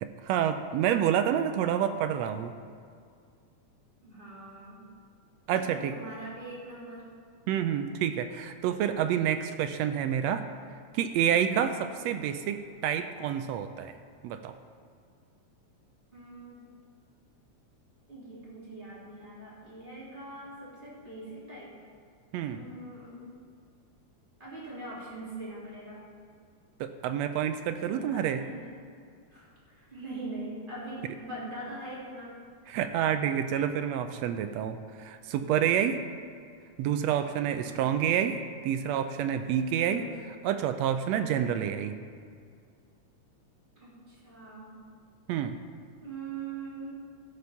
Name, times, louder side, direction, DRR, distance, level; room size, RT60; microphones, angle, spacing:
voice 1, 0.0-2.5 5.5-5.9 7.5-10.4 10.9-13.9 14.2-14.5 22.3-22.6 26.8-28.4 32.7-36.0 36.8-40.0 40.4-42.0 45.3-45.6, right 9 dB, 80° right, 9 dB, 1.6 m, -28 dB
voice 2, 4.0-4.8 5.5-7.0 16.1-16.6 18.1-21.7 22.5-23.3 24.4-26.0 27.8-28.6 29.3-32.3 37.6-37.9 39.8-40.1 43.8-44.8 46.0-46.9, right 2 dB, 15° right, -7 dB, 3.1 m, -42 dB
13.5 x 6.8 x 5.8 m, 2.2 s
omnidirectional pair, 3.3 m